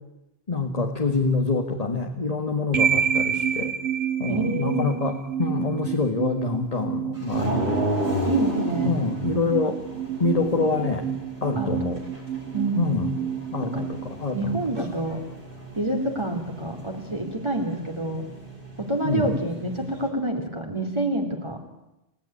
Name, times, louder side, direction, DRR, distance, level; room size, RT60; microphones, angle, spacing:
voice 1, 0.5-3.7 4.2-7.7 8.8-9.8 10.2-11.1 11.4-12.0 12.8-13.1 13.5-13.9 14.2-14.5 19.0-19.3, left 3 dB, 35° left, 3 dB, 1.9 m, -26 dB
sound 1, 2.7-14.8, right 8 dB, 80° right, 2.3 m, -29 dB
voice 2, 4.3-5.0 8.2-8.9 11.6-11.7 12.5-12.9 13.6-13.8 14.3-15.2 15.7-18.3 18.8-21.6, right 1 dB, 25° right, 2 dB, 3.0 m, -27 dB
sound 2, 7.3-20.1, right 1 dB, 55° right, 7.1 m, -33 dB
28.5 x 17.0 x 9.9 m, 0.93 s
omnidirectional pair, 1.1 m